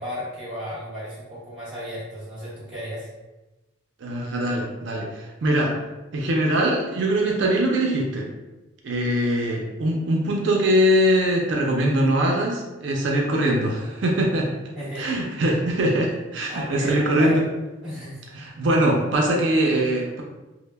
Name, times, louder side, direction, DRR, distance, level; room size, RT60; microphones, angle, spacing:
voice 1, 0.0-3.1 14.7-15.2 16.5-17.4 17.8-18.2, equal, 5° right, -12 dB, 0.9 m, -34 dB
voice 2, 4.0-5.7 6.1-8.3 8.8-14.5 15.0-17.4 18.4-20.2, right 1 dB, 65° right, -1 dB, 0.4 m, -22 dB
2.1 x 2.0 x 3.2 m, 1.1 s
head